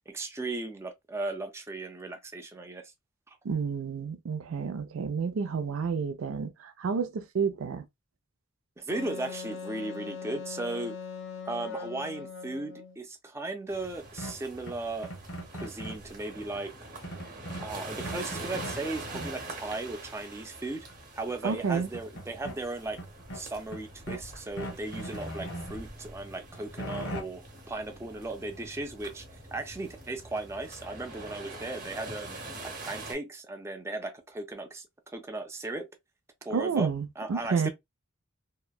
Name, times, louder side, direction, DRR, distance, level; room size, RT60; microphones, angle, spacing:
voice 1, 0.1-2.9 3.3-3.4 8.8-11.0 11.5-15.1 15.6-16.7 17.6-20.9 21.1-23.0 23.3-27.4 27.7-32.4 32.6-35.9 36.4-36.9 37.2-37.7, right 2 dB, 15° right, 0.4 m, -36 dB
voice 2, 3.4-7.9 21.4-21.9 36.5-37.7, right 5 dB, 85° right, 0.4 m, -30 dB
Wind instrument woodwind instrument, 8.9-13.0, left 5 dB, 70° left, 0.5 m, -40 dB
sound 1, 13.7-33.1, right 2 dB, 40° right, 0.9 m, -44 dB
sound 2, 14.2-16.1 17.0-18.8 19.1-19.6 20.9-21.0 21.3-22.6 23.0-24.3 24.6-25.8 26.3-27.2, right 1 dB, 90° left, 0.9 m, -40 dB
2.8 x 2.1 x 2.2 m
head